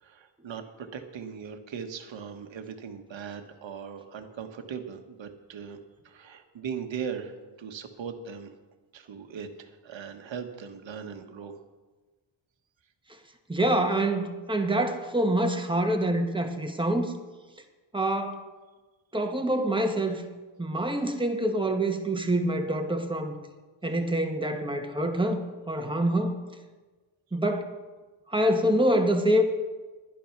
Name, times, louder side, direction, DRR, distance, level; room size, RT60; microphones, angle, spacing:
voice 1, 0.0-5.8 6.0-8.5 8.9-11.6, right 7 dB, 65° right, 6 dB, 1.4 m, -39 dB
voice 2, 13.5-17.1 17.9-18.4 19.1-20.2 20.6-23.4 23.8-26.4 27.3-27.7 28.3-29.4, right 1 dB, 10° right, 4 dB, 1.2 m, -26 dB
12.0 x 11.0 x 5.8 m, 1.3 s
wide cardioid pair, 145°, 48 cm